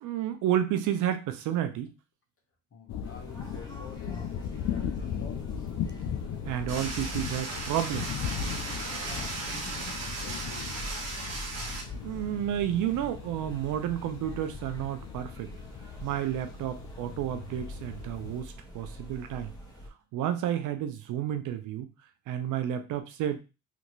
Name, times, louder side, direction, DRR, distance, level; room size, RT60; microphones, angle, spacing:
voice 1, 0.0-1.9 6.5-8.1 12.0-15.5 16.0-19.5 20.1-21.9 22.3-23.4, right 11 dB, 90° right, 8 dB, 0.6 m, -31 dB
voice 2, 2.7-5.7 9.1-10.0 10.2-10.9, left 4 dB, 45° left, 4 dB, 1.1 m, -49 dB
sound 1, 2.9-18.4, left 8 dB, 65° left, 0.5 m, -38 dB
sound 2, 3.0-19.9, equal, 10° left, 1.2 m, -45 dB
sound 3, 6.7-11.8, right 3 dB, 60° right, 1.1 m, -36 dB
3.4 x 2.5 x 3.0 m, 0.29 s
cardioid pair, 90°, 30 cm